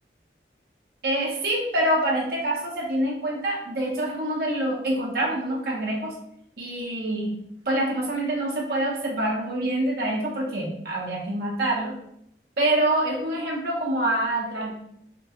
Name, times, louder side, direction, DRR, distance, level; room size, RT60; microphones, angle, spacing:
voice 1, 1.0-6.1 6.6-7.3 7.7-11.9 12.6-14.7, right 1 dB, 60° right, -3 dB, 0.6 m, -26 dB
2.8 x 2.4 x 2.7 m, 0.74 s
head